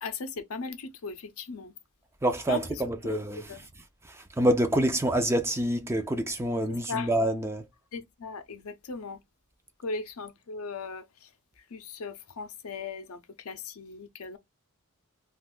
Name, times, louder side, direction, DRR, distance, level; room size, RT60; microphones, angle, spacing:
voice 1, 0.0-1.7 2.5-3.6 6.7-7.1 7.9-9.2 9.8-11.3 11.6-14.4, left 4 dB, 70° left, 0.6 m, -38 dB
voice 2, 2.2-3.4 4.4-7.6, right 1 dB, 10° right, 0.4 m, -26 dB
2.5 x 2.3 x 3.7 m
head